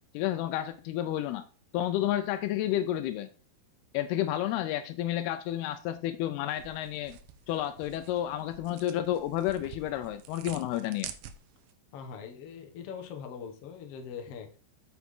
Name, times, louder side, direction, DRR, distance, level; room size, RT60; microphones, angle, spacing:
voice 1, 0.1-1.5 1.7-3.3 3.9-7.2 7.5-11.1, left 12 dB, 85° left, 2.6 m, -31 dB
sound 1, 6.5-11.7, right 10 dB, 80° right, 2.4 m, -48 dB
voice 2, 11.9-14.6, left 7 dB, 60° left, 1.6 m, -42 dB
8.4 x 7.1 x 3.7 m
omnidirectional pair, 4.5 m